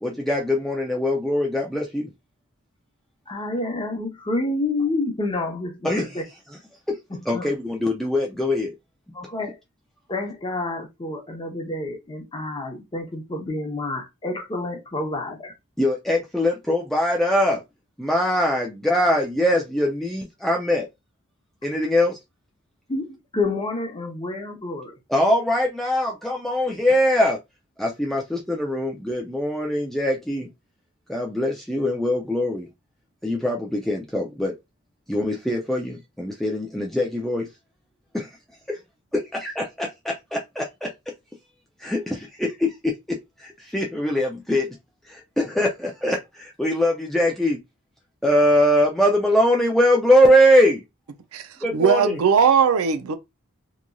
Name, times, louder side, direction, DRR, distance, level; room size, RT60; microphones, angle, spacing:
voice 1, 0.0-2.1 5.8-6.1 7.3-8.7 15.8-17.6 18.0-20.9 21.6-22.2 25.1-27.4 27.8-30.5 31.1-32.7 33.2-34.5 35.1-37.5 38.1-38.3 39.3-40.9 41.8-44.8 45.1-47.6 48.2-50.8 51.6-52.2, equal, ahead, 0.3 m, -22 dB
voice 2, 3.3-6.2 7.1-7.5 9.1-9.6 10.1-15.5 22.9-25.0, left 2 dB, 25° left, 0.7 m, -29 dB
voice 3, 51.7-53.2, right 7 dB, 75° right, 0.4 m, -19 dB
2.9 x 2.5 x 2.2 m
head